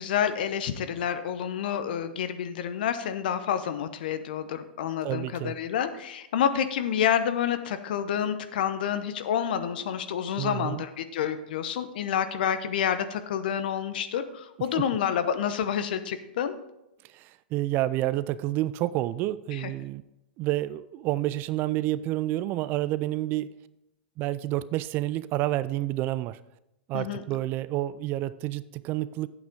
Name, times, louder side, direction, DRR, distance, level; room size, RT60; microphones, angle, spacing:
voice 1, 0.0-16.6 19.5-19.7 26.9-27.2, left 9 dB, 65° left, 11 dB, 0.9 m, -28 dB
voice 2, 5.0-5.6 10.4-10.8 14.8-14.9 17.1-20.0 20.4-23.5 24.2-26.4 26.9-29.3, right 15 dB, 35° right, 17 dB, 0.4 m, -29 dB
9.1 x 8.3 x 3.8 m, 0.88 s
hypercardioid pair, 105°, 5 cm